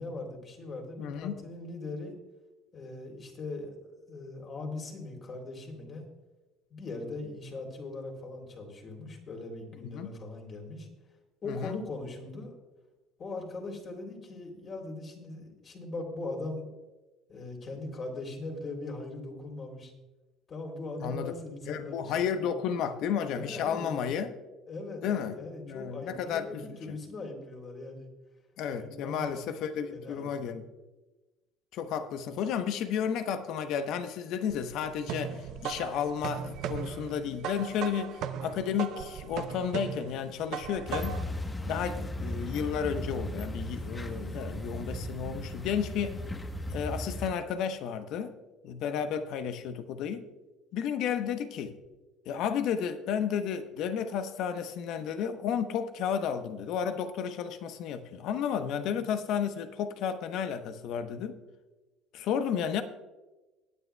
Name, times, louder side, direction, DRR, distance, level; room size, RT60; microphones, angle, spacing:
voice 1, 0.0-2.1 2.7-6.1 6.7-10.9 11.4-12.6 13.2-16.7 17.3-19.9 20.5-22.5 23.3-24.2 24.7-28.1 28.8-30.6, left 2 dB, 45° left, 2 dB, 3.3 m, -40 dB
voice 2, 1.0-1.4 9.8-10.1 11.5-11.8 21.0-21.4 21.7-24.3 25.0-25.4 25.6-27.0 28.6-30.6 31.7-41.2 41.7-46.2 46.7-48.3 48.6-50.3 50.7-51.7 52.3-61.4 62.1-62.8, left 8 dB, 65° left, 10 dB, 1.0 m, -32 dB
sound 1, 34.5-41.4, right 8 dB, 65° right, 0.7 m, -38 dB
sound 2, 40.9-47.3, left 1 dB, 20° left, 1.2 m, -36 dB
21.5 x 9.5 x 2.3 m, 1.1 s
hypercardioid pair, 70°, 0 cm